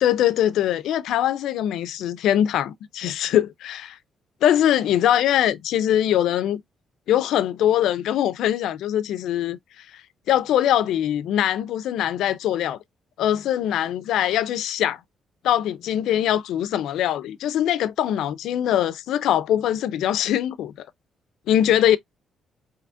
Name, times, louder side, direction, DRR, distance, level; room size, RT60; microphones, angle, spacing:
voice 1, 0.0-4.0 4.4-6.6 7.1-9.6 10.3-12.8 13.2-15.0 15.4-20.9 21.5-22.0, left 11 dB, 80° left, 0.4 m, -22 dB
5.0 x 2.9 x 2.4 m
cardioid pair, 90°, 0 cm